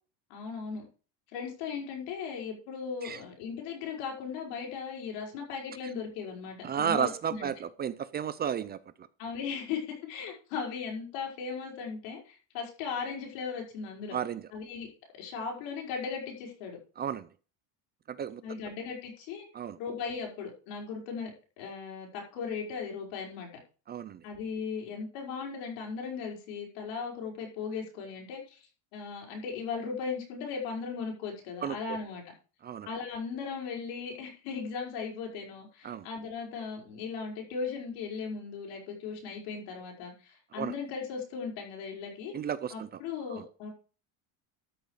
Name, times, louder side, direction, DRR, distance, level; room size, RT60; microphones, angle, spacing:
voice 1, 0.3-0.8 1.3-7.5 9.2-14.2 14.5-14.9 15.2-16.8 18.4-19.5 19.8-23.5 24.2-28.6 28.9-32.2 32.9-42.3 42.7-43.7, left 5 dB, 85° left, 1 dB, 5.4 m, -37 dB
voice 2, 6.6-9.1 14.1-14.5 17.0-17.3 18.1-18.4 19.5-19.8 23.9-24.2 31.6-32.0 32.6-32.9 35.8-36.1 40.5-40.7 42.3-43.0 43.3-43.4, right 8 dB, 25° right, 15 dB, 0.4 m, -33 dB
13.0 x 6.7 x 4.9 m, 0.36 s
cardioid pair, 150°, 41 cm